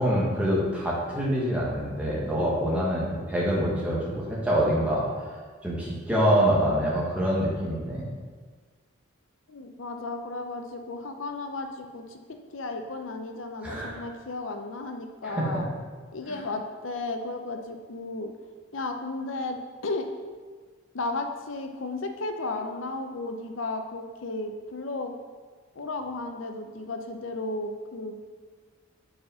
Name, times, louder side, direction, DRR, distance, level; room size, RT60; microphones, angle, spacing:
voice 1, 0.0-5.1 5.6-8.1 13.6-14.0 15.2-15.6 16.3-16.4, equal, 5° right, -6 dB, 1.5 m, -25 dB
voice 2, 9.5-12.2 12.5-15.7 16.1-18.3 18.7-20.1 20.9-25.1 25.8-28.2, left 2 dB, 70° left, 5 dB, 0.7 m, -34 dB
5.0 x 4.8 x 5.6 m, 1.5 s
head